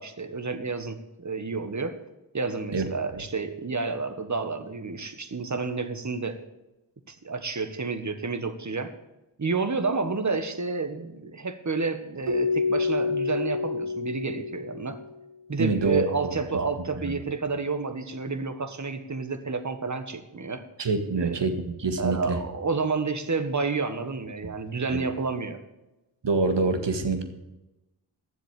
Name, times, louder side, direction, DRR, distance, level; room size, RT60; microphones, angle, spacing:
voice 1, 0.0-1.9 2.3-6.4 7.1-8.9 9.4-15.0 15.5-20.6 21.1-21.4 22.0-25.6, right 4 dB, 35° right, 9 dB, 1.6 m, -30 dB
Keyboard (musical), 12.3-15.1, left 4 dB, 85° right, 2.2 m, -28 dB
voice 2, 15.6-16.3 17.0-17.1 20.8-22.4 24.9-25.0 26.2-27.2, right 3 dB, 60° right, 7 dB, 2.0 m, -26 dB
10.5 x 7.4 x 8.3 m, 0.99 s
cardioid pair, 45°, 49 cm